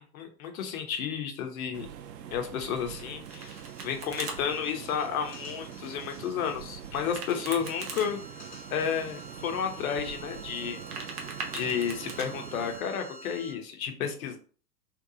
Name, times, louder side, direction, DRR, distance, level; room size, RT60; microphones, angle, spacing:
voice 1, 0.1-1.9 2.3-8.2 8.7-10.8 11.5-14.4, left 7 dB, 60° left, 5 dB, 0.8 m, -32 dB
sound 1, 1.7-12.8, right 9 dB, 80° right, 0.5 m, -44 dB
Domestic sounds home sounds, 3.0-4.4 6.9-8.1 10.6-12.3, right 4 dB, 30° right, 0.3 m, -40 dB
sound 2, 3.3-13.5, right 2 dB, 80° left, 1.1 m, -49 dB
2.6 x 2.3 x 2.6 m, 0.40 s
hypercardioid pair, 100°, 49 cm